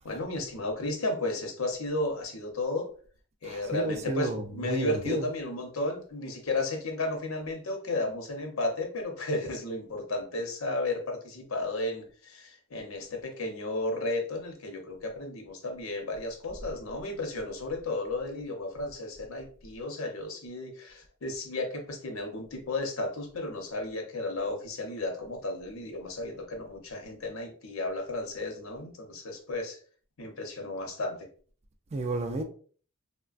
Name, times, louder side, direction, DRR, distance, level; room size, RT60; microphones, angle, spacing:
voice 1, 0.0-2.9 3.4-29.8 30.2-31.3, left 2 dB, 80° left, 0.7 m, -33 dB
voice 2, 3.4-5.3 31.9-32.4, right 2 dB, 30° right, 0.4 m, -31 dB
3.2 x 2.1 x 2.4 m
head